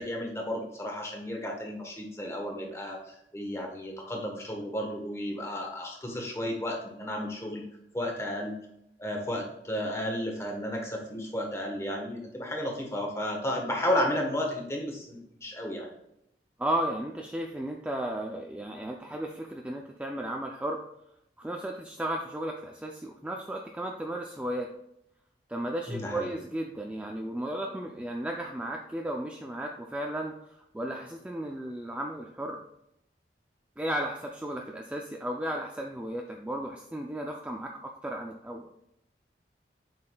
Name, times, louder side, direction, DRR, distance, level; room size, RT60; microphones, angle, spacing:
voice 1, 0.0-7.6 7.9-8.5 9.0-15.9 25.9-26.3, left 1 dB, 15° left, 1 dB, 1.1 m, -33 dB
voice 2, 16.6-20.8 21.4-24.7 25.5-32.6 33.8-38.7, right 1 dB, 5° right, 1 dB, 0.4 m, -34 dB
7.6 x 5.7 x 2.3 m, 0.79 s
head